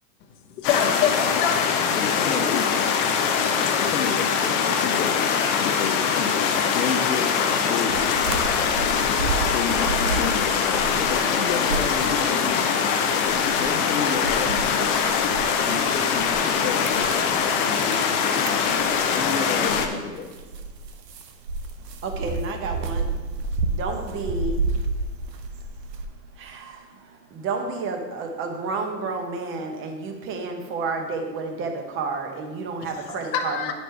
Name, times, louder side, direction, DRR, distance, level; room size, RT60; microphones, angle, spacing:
voice 1, 0.6-2.0 33.1-33.7, left 8 dB, 50° left, 4 dB, 0.9 m, -25 dB
sound 1, 0.6-19.9, left 6 dB, 25° left, 0.4 m, -23 dB
voice 2, 2.0-3.0 3.8-5.1 5.6-7.3 7.7-7.9 9.5-12.8 13.2-17.5 19.1-20.3, left 6 dB, 80° left, 3 dB, 0.9 m, -31 dB
sound 2, 7.9-12.7 13.0-26.1, right 3 dB, 90° right, 0.8 m, -31 dB
voice 3, 21.8-33.7, right 4 dB, 25° right, 4 dB, 0.9 m, -32 dB
9.0 x 5.2 x 3.4 m, 1.4 s
hypercardioid pair, 120°, 48 cm